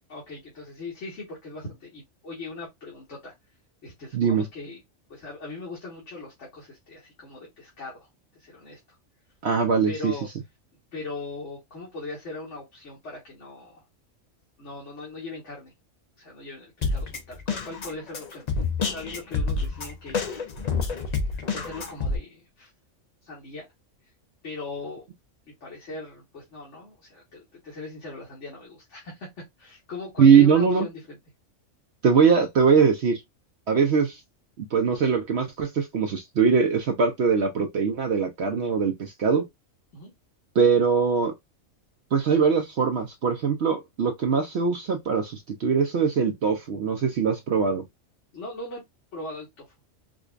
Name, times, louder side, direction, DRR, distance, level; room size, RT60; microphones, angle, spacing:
voice 1, 0.1-3.3 3.8-4.8 5.1-8.1 8.3-8.8 9.9-10.3 10.9-13.8 14.6-15.7 16.2-20.3 21.5-22.7 23.2-23.7 24.4-25.1 25.4-31.2 39.9-40.1 48.3-48.8 49.1-49.7, left 3 dB, 65° left, 1.7 m, -40 dB
voice 2, 4.1-4.4 9.4-10.1 30.2-30.9 32.0-33.2 33.7-34.2 34.6-39.4 40.6-41.3 42.1-47.8, right 6 dB, 60° right, 0.8 m, -21 dB
Drum kit, 16.8-22.2, left 4 dB, 45° left, 0.6 m, -28 dB
4.9 x 2.3 x 2.4 m
omnidirectional pair, 1.3 m